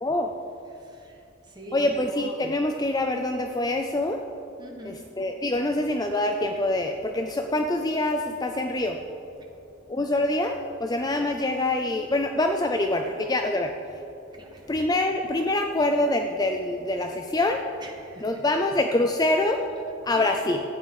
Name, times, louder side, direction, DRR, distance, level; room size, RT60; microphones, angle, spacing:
voice 1, 0.0-0.3 1.7-4.2 4.8-9.0 9.9-13.7 14.7-17.6 18.2-19.6 20.0-20.6, left 2 dB, 20° left, 4 dB, 0.4 m, -25 dB
voice 2, 0.7-2.0 4.6-5.0 12.7-13.0 14.3-14.7 17.8-18.4 20.1-20.5, right 1 dB, 20° right, 0 dB, 1.5 m, -44 dB
13.0 x 9.3 x 5.4 m, 2.7 s
head